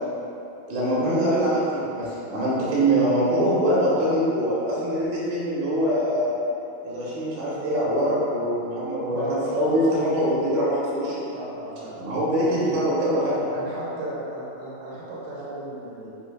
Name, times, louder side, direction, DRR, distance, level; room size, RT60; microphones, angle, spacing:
voice 1, 0.7-6.4 6.8-11.2 12.0-13.5, right 1 dB, 85° right, -8 dB, 3.1 m, -23 dB
voice 2, 9.1-9.9 11.3-12.0 12.4-12.5 13.5-16.1, right 1 dB, 70° right, -7 dB, 1.9 m, -34 dB
8.1 x 2.7 x 2.4 m, 3.0 s
omnidirectional pair, 4.3 m